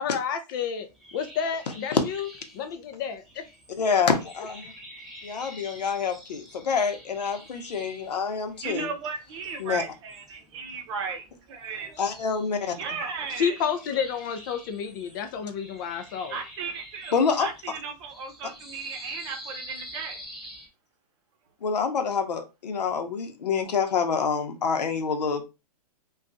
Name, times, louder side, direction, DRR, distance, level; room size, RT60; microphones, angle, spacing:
voice 1, 0.0-2.3 2.5-3.5 3.8-3.9 13.3-16.4, left 7 dB, 35° left, 0.3 m, -30 dB
sound 1, 0.8-20.7, equal, ahead, 0.7 m, -47 dB
voice 2, 3.8-4.7 5.2-8.9 9.6-9.8 12.0-12.8 17.1-17.7 21.6-25.4, left 5 dB, 85° left, 0.8 m, -27 dB
voice 3, 8.6-11.9 12.8-13.6 16.3-20.2, right 5 dB, 45° right, 0.8 m, -35 dB
2.4 x 2.3 x 3.8 m
hypercardioid pair, 145°, 20 cm